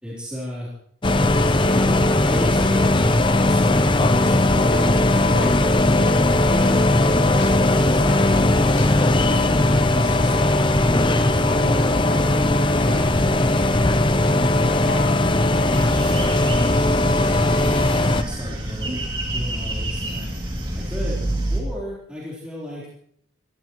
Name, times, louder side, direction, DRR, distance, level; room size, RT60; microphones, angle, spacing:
voice 1, 0.0-0.7 1.7-5.4 5.9-7.5 9.2-10.5 11.2-13.8 18.2-20.3 20.8-21.2 21.5-22.9, equal, 5° right, -7 dB, 3.8 m, -35 dB
sound 1, 1.0-18.2, left 2 dB, 25° left, 0.7 m, -18 dB
sound 2, 4.7-9.6 10.0-11.8 12.1-12.5 12.9-15.7, left 1 dB, 60° left, 7.4 m, -35 dB
sound 3, 15.7-21.6, right 1 dB, 25° right, 2.6 m, -27 dB
20.5 x 16.0 x 3.1 m, 0.66 s
head